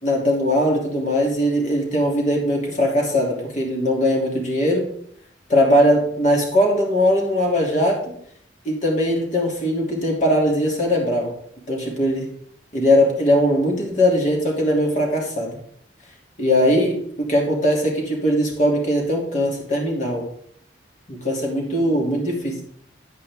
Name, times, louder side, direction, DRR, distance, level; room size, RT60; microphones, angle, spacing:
voice 1, 0.0-4.9 5.5-8.1 8.6-11.3 11.7-12.3 12.7-15.6 16.4-20.2 21.1-22.6, equal, 40° left, -1 dB, 3.0 m, -20 dB
10.0 x 8.6 x 3.7 m, 0.65 s
head